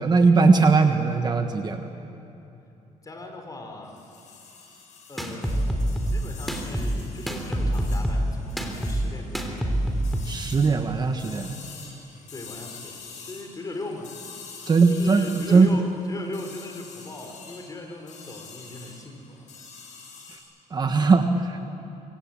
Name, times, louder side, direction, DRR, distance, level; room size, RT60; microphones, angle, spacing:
voice 1, 0.0-1.9 10.2-11.5 14.7-15.7 20.7-21.6, right 4 dB, 30° right, 6 dB, 1.4 m, -20 dB
voice 2, 3.0-4.0 5.1-9.8 12.3-14.2 14.6-19.5, left 2 dB, 25° left, 3 dB, 4.2 m, -38 dB
sound 1, 3.8-20.4, left 5 dB, 60° left, 7.4 m, -46 dB
sound 2, 5.2-10.2, right 1 dB, ahead, 3.2 m, -26 dB
25.5 x 24.5 x 8.8 m, 2.9 s
cardioid pair, 130°, 14 cm